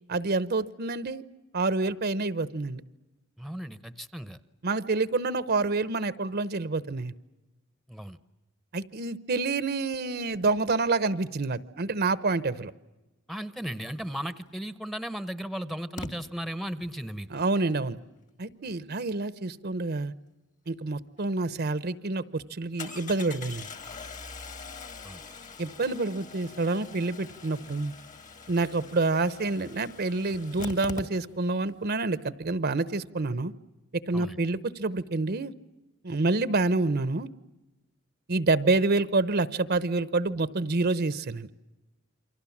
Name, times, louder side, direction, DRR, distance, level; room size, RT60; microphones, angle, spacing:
voice 1, 0.1-1.2 1.5-2.8 4.6-7.1 8.7-12.7 17.3-18.0 18.4-20.1 20.7-23.7 25.6-27.9 28.5-33.5 34.1-35.5 36.0-37.3 38.3-41.5, right 3 dB, 50° right, 16 dB, 0.8 m, -27 dB
voice 2, 3.4-4.4 7.9-8.2 13.3-17.3 25.0-25.2 34.1-34.4, equal, ahead, 13 dB, 0.9 m, -36 dB
Engine starting, 14.5-14.6 16.0-16.1 21.2-21.3 21.6-21.7 22.8-31.6 31.9-32.0 32.2-32.3, left 3 dB, 40° left, 1.8 m, -43 dB
29.0 x 24.5 x 7.2 m, 1.0 s
head